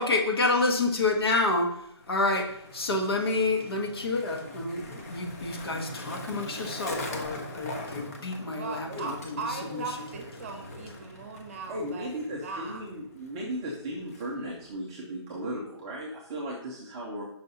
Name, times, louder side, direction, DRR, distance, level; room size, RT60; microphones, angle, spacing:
voice 1, 0.0-1.7 2.1-9.2 9.7-9.8, left 2 dB, 60° left, 2 dB, 1.3 m, -28 dB
Skateboard, 2.0-14.7, left 1 dB, 30° left, 0.9 m, -42 dB
voice 2, 8.5-12.8, right 4 dB, 30° right, 4 dB, 0.9 m, -38 dB
voice 3, 11.7-17.2, right 1 dB, 10° right, -5 dB, 0.5 m, -36 dB
5.5 x 5.2 x 4.0 m, 0.75 s
hypercardioid pair, 170°, 15 cm